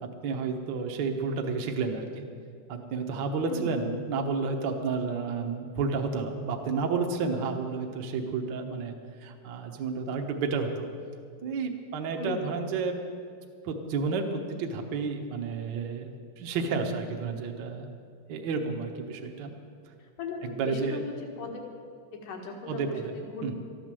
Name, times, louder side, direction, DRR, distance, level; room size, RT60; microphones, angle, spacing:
voice 1, 0.0-2.2 2.7-8.9 9.2-10.9 11.4-13.0 13.6-17.9 18.3-19.5 20.4-21.1 22.7-23.1 23.4-23.5, right 4 dB, 70° right, 3 dB, 1.0 m, -31 dB
voice 2, 3.4-3.9 12.2-12.5 20.0-21.6 22.1-23.5, left 3 dB, 90° left, 1 dB, 3.2 m, -38 dB
13.5 x 10.0 x 7.5 m, 2.3 s
omnidirectional pair, 3.6 m